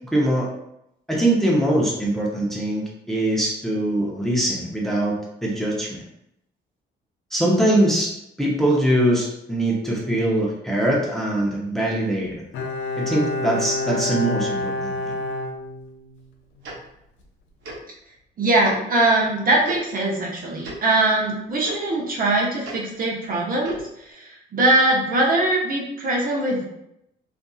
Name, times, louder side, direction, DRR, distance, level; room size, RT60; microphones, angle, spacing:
voice 1, 0.1-0.5 1.1-6.0 7.3-8.1 8.4-12.4 13.0-14.9, right 1 dB, ahead, -4 dB, 0.6 m, -22 dB
Bowed string instrument, 12.5-16.3 16.6-16.7, left 3 dB, 80° left, 0.5 m, -28 dB
Tick-tock, 16.6-16.8 17.6-17.8 18.6-18.8 19.6-19.8 20.6-20.8 21.6-21.7 22.6-22.8 23.6-23.8, right 2 dB, 75° right, 0.8 m, -35 dB
voice 2, 18.4-26.7, right 2 dB, 45° right, -2 dB, 0.7 m, -21 dB
2.6 x 2.5 x 2.3 m, 0.80 s
cardioid pair, 90°, 20 cm